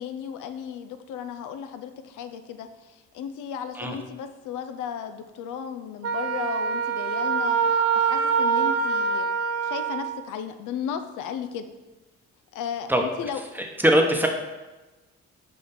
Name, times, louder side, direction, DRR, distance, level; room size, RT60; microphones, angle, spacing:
voice 1, 0.0-9.3 9.6-11.7 12.5-12.9 13.2-13.4, left 8 dB, 85° left, 9 dB, 0.5 m, -35 dB
Wind instrument woodwind instrument, 6.0-10.2, right 6 dB, 50° right, 0.6 m, -24 dB
voice 2, 13.5-14.3, right 1 dB, 5° right, 3 dB, 0.9 m, -21 dB
5.5 x 5.1 x 4.2 m, 1.1 s
cardioid pair, 90°, 30 cm